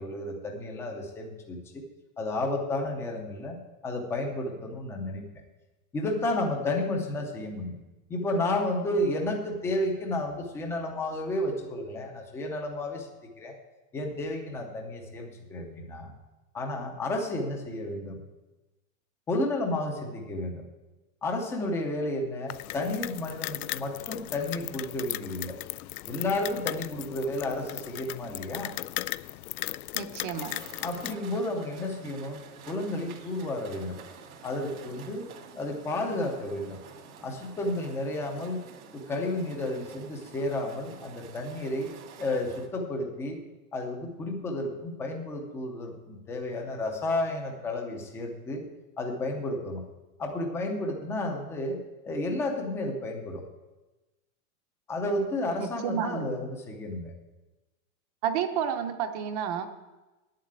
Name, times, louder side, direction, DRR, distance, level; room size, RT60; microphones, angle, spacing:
voice 1, 0.0-1.8 2.2-3.6 3.8-5.2 5.9-7.8 8.1-13.1 13.4-13.6 13.9-16.1 16.5-18.2 19.3-20.6 21.2-25.6 26.1-28.7 30.8-32.4 32.7-34.0 34.4-35.3 35.6-36.8 37.2-38.6 38.9-41.9 42.2-43.4 43.7-48.6 49.0-49.8 50.2-53.4 54.9-57.1, left 1 dB, 5° left, 3 dB, 0.6 m, -32 dB
sound 1, 22.5-31.1, left 16 dB, 85° left, 0.5 m, -37 dB
voice 2, 29.9-30.6 55.6-56.4 58.2-59.7, right 8 dB, 30° right, 8 dB, 0.8 m, -31 dB
sound 2, 30.4-42.7, right 6 dB, 80° right, 2.4 m, -49 dB
9.0 x 7.6 x 8.8 m, 1.1 s
supercardioid pair, 175°, 42 cm